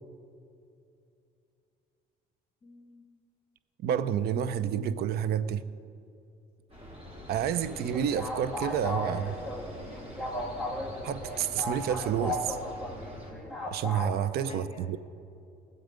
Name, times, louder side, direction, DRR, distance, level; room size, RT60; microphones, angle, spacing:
voice 1, 2.6-3.0 12.1-12.3 14.5-15.0, left 3 dB, 40° left, 7 dB, 1.0 m, -49 dB
voice 2, 3.8-5.6 7.3-9.4 11.0-12.6 13.7-15.0, right 9 dB, 70° right, 14 dB, 0.6 m, -29 dB
sound 1, 6.7-13.3, equal, 35° right, 3.8 m, -44 dB
sound 2, 7.7-14.1, left 1 dB, ahead, 2.0 m, -36 dB
19.0 x 7.7 x 5.1 m, 2.6 s
cardioid pair, 110°, 17 cm